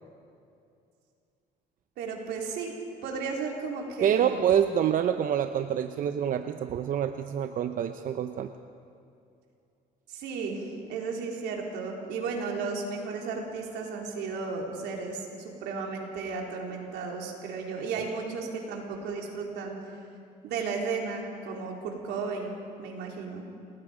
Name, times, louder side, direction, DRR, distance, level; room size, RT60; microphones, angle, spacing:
voice 1, 2.0-2.7 3.0-4.4 10.1-19.8 20.4-23.4, right 4 dB, 85° right, 0 dB, 4.0 m, -34 dB
voice 2, 4.0-8.5, right 9 dB, 55° right, 8 dB, 0.8 m, -26 dB
29.0 x 19.5 x 5.1 m, 2.5 s
cardioid pair, 110°, 17 cm